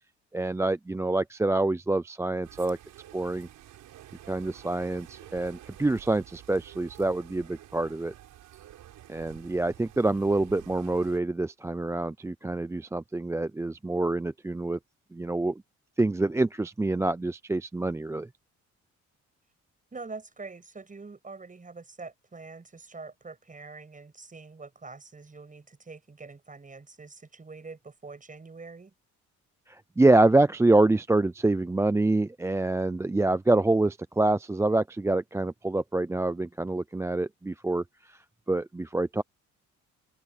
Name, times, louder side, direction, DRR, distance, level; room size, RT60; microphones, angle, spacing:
voice 1, 0.3-2.8 3.1-3.5 4.3-8.1 9.1-14.8 15.1-15.5 16.0-18.3 29.7-38.2 38.5-39.2, right 2 dB, 10° right, 0.4 m, -26 dB
sound 1, 2.4-11.2, right 12 dB, 80° right, 5.7 m, -50 dB
voice 2, 19.9-28.9, right 4 dB, 25° right, 6.7 m, -45 dB
open air
cardioid pair, 90°, 30 cm